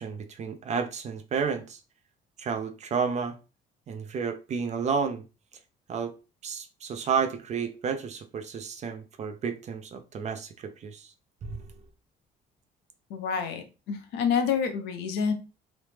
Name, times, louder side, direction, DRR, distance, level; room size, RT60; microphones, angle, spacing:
voice 1, 0.0-1.8 2.4-3.4 3.9-5.2 5.9-6.1 6.4-11.1 11.4-11.7, right 6 dB, 45° right, 0.5 m, -31 dB
voice 2, 13.1-15.3, left 6 dB, 85° left, 0.7 m, -28 dB
3.1 x 2.0 x 3.2 m
cardioid pair, 110°, 17 cm